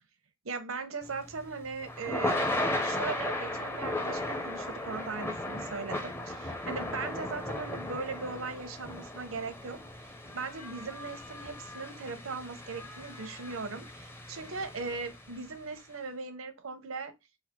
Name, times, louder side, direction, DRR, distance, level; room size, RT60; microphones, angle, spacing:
voice 1, 0.4-2.4 2.8-9.8 10.0-17.1, right 4 dB, 75° right, 0.9 m, -39 dB
Thunder / Rain, 1.1-15.4, left 1 dB, 10° left, 0.6 m, -36 dB
4.0 x 2.4 x 4.3 m
head